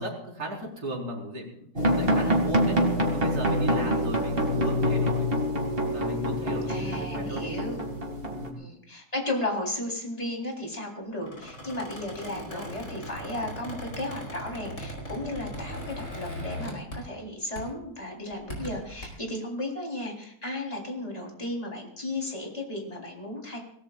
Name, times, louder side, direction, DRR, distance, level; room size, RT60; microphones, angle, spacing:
voice 1, 0.0-1.7 2.0-2.8 3.1-5.3 5.9-7.7 8.3-8.6 12.5-12.7, right 1 dB, 50° right, -4 dB, 5.3 m, -36 dB
sound 1, 1.7-8.5, equal, 30° right, 2.5 m, -26 dB
voice 2, 6.7-7.8 8.6-23.6, left 1 dB, 20° left, -1 dB, 4.0 m, -34 dB
Squeak, 11.2-17.3 17.6-17.8 18.3-19.1, equal, 40° left, 5.3 m, -39 dB
25.5 x 18.0 x 2.5 m, 0.71 s
omnidirectional pair, 2.1 m